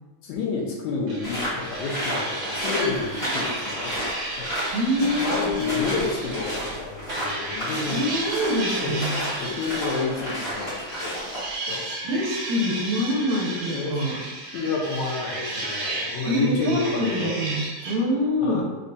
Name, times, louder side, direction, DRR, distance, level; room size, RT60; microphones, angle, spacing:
voice 1, 0.2-4.5 5.2-8.0 8.7-8.9 9.3-11.9 13.7-14.1 14.5-17.3 18.4-18.6, left 3 dB, 80° left, -3 dB, 1.8 m, -30 dB
sound 1, 1.1-6.8 7.1-18.0, right 2 dB, 65° right, 1.5 m, -34 dB
sound 2, 1.2-11.5, equal, 45° left, 0.8 m, -32 dB
voice 2, 4.7-5.9 7.9-9.3 12.0-14.2 16.3-18.6, left 1 dB, 80° right, -1 dB, 1.9 m, -25 dB
5.0 x 2.2 x 2.6 m, 1.2 s
omnidirectional pair, 3.3 m